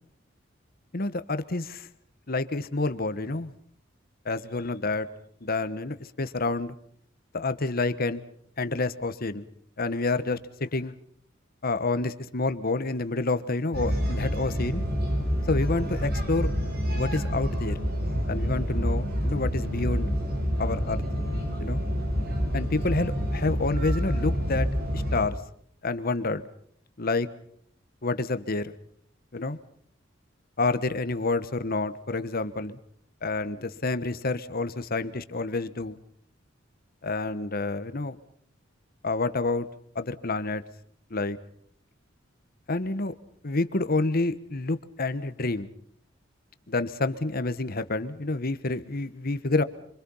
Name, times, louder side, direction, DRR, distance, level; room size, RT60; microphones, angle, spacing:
voice 1, 0.9-1.9 2.3-3.5 4.2-5.1 5.4-6.8 7.3-8.2 8.6-9.4 9.8-10.9 11.6-14.8 15.5-16.5 16.9-17.8 18.3-20.1 20.6-21.0 21.6-21.8 22.5-24.7 24.9-25.4 25.8-26.4 27.0-27.3 28.0-28.7 29.3-29.6 30.6-32.8 33.2-36.0 37.0-38.2 39.0-39.7 39.9-40.6 41.1-41.4 42.7-43.1 43.4-45.7 46.7-49.6, left 3 dB, 50° left, 12 dB, 1.3 m, -28 dB
sound 1, 13.7-25.3, equal, 55° right, 5.9 m, -28 dB
26.5 x 25.5 x 5.6 m, 0.65 s
head